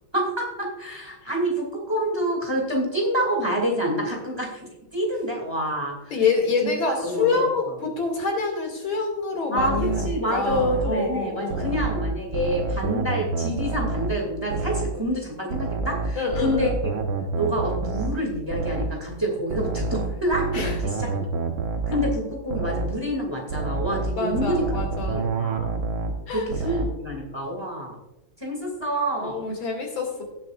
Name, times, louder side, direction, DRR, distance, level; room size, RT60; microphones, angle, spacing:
voice 1, 0.1-6.0 6.6-7.5 9.5-16.9 17.4-20.7 21.0-21.1 21.9-24.8 25.0-25.8 26.3-28.0 28.4-29.4, equal, 15° right, 0 dB, 2.5 m, -27 dB
voice 2, 6.1-11.7 16.1-16.7 20.5-20.8 24.2-25.3 26.3-26.8 29.2-30.2, left 4 dB, 80° left, 1 dB, 3.3 m, -27 dB
sound 1, 9.6-11.0 11.5-14.2 14.5-15.0 15.5-19.0 19.5-22.2 22.5-23.0 23.5-26.2 26.5-27.0, right 3 dB, 80° right, 1.9 m, -28 dB
18.0 x 7.7 x 2.5 m, 0.91 s
omnidirectional pair, 2.1 m